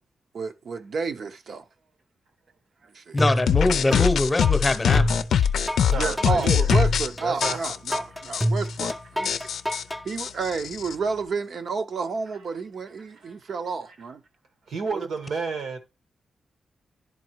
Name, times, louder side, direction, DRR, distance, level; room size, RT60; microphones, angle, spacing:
voice 1, 0.3-1.6 2.9-3.2 5.9-9.3 10.0-14.2 14.9-15.1, right 4 dB, 60° right, 0.8 m, -31 dB
voice 2, 3.1-5.3, left 2 dB, 25° left, 0.9 m, -23 dB
sound 1, 3.2-4.0 4.4-10.0, equal, ahead, 0.6 m, -27 dB
sound 2, 3.5-7.1 7.4-8.0 8.3-8.4 8.7-8.9 9.2-10.9, left 8 dB, 90° left, 0.5 m, -23 dB
voice 3, 5.9-6.7 7.2-7.6 13.1-13.4 14.7-15.8, right 4 dB, 85° right, 1.5 m, -31 dB
11.0 x 3.9 x 4.6 m
wide cardioid pair, 120°, 0 cm